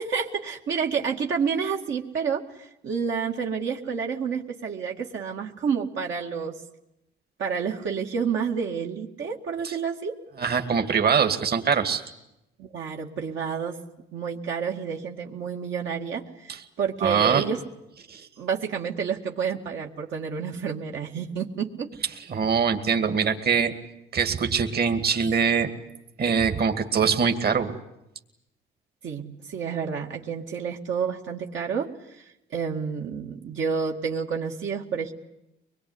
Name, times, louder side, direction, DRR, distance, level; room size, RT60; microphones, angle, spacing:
voice 1, 0.0-6.6 7.4-10.2 12.6-13.8 14.1-17.6 18.4-21.9 29.0-31.9 32.2-32.3 32.5-35.1, right 6 dB, 70° right, 0 dB, 2.2 m, -29 dB
voice 2, 10.4-12.0 16.5-16.6 17.0-17.4 18.1-18.2 22.3-23.7 24.1-25.7 26.2-27.8, right 6 dB, 50° right, 7 dB, 2.4 m, -23 dB
24.5 x 21.0 x 9.7 m, 0.86 s
cardioid pair, 90°, 20 cm